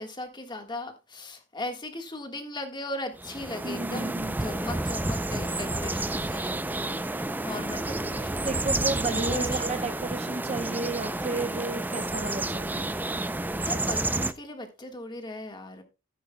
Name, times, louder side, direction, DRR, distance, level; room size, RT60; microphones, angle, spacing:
voice 1, 0.0-8.8 9.1-9.7 13.6-15.8, left 1 dB, 25° left, 1.5 m, -38 dB
sound 1, 3.2-14.3, right 2 dB, 10° right, 0.4 m, -30 dB
voice 2, 3.6-4.4 8.4-12.9, right 3 dB, 35° right, 0.8 m, -32 dB
13.5 x 10.0 x 2.2 m
head